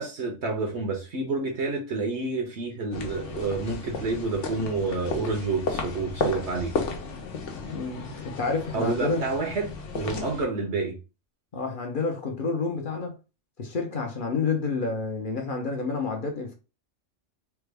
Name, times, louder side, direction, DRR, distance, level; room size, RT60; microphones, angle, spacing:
voice 1, 0.0-6.7 8.7-9.7 9.9-11.0, right 3 dB, 65° right, 1.0 m, -29 dB
sound 1, 2.9-10.4, left 4 dB, 70° left, 1.1 m, -34 dB
voice 2, 7.7-9.2 11.5-13.1 13.6-16.5, left 4 dB, 50° left, 0.8 m, -29 dB
3.3 x 2.3 x 3.2 m
omnidirectional pair, 1.3 m